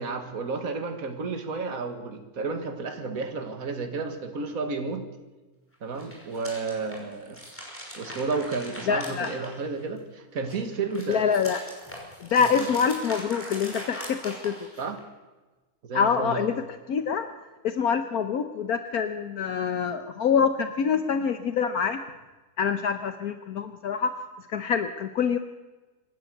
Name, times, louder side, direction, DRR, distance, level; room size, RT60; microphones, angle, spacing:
voice 1, 0.0-5.1 5.8-7.4 8.0-11.2 12.6-12.7 14.8-15.0 15.8-16.5, right 4 dB, 60° right, 6 dB, 2.4 m, -32 dB
sound 1, 5.9-10.0 10.4-15.0, equal, 10° left, 5.7 m, -41 dB
voice 2, 8.9-9.3 11.1-11.6 12.2-14.5 15.9-16.6 16.9-17.3 17.6-22.0 22.6-24.2 24.5-25.4, left 6 dB, 70° left, 9 dB, 1.4 m, -25 dB
26.0 x 12.5 x 8.0 m, 1.2 s
omnidirectional pair, 1.7 m